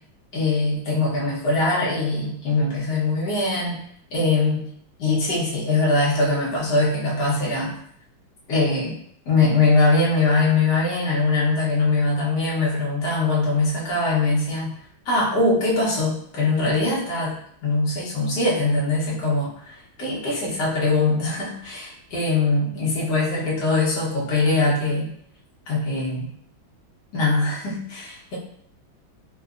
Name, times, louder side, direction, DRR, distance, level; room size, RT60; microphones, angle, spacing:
voice 1, 0.3-3.8 4.1-4.7 5.0-7.7 8.5-9.0 9.3-14.7 15.0-17.4 17.6-25.1 25.7-26.3 27.1-28.4, left 3 dB, 65° left, -6 dB, 1.6 m, -22 dB
4.0 x 2.2 x 2.4 m, 0.64 s
omnidirectional pair, 2.2 m